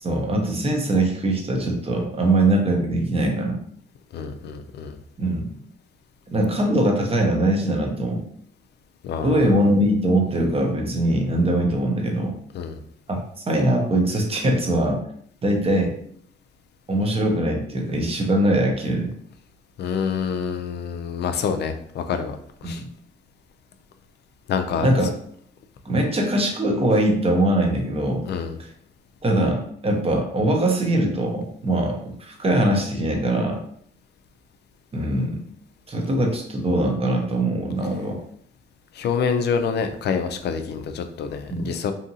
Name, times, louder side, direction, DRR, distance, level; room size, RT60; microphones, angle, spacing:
voice 1, 0.0-3.6 5.2-5.5 6.3-8.3 9.2-12.3 13.1-15.0 15.4-15.9 16.9-19.1 22.6-22.9 24.8-25.1 25.8-28.3 28.6-28.7 29.2-33.6 34.9-35.5 35.9-38.2 41.5-41.7, right 1 dB, 30° right, 2 dB, 0.7 m, -22 dB
voice 2, 4.1-5.0 9.0-9.4 12.5-12.8 19.8-22.4 22.6-22.8 24.5-24.9 28.3-28.5 39.0-41.9, left 6 dB, 60° left, 7 dB, 0.4 m, -26 dB
2.8 x 2.5 x 2.7 m, 0.67 s
cardioid pair, 90°, 20 cm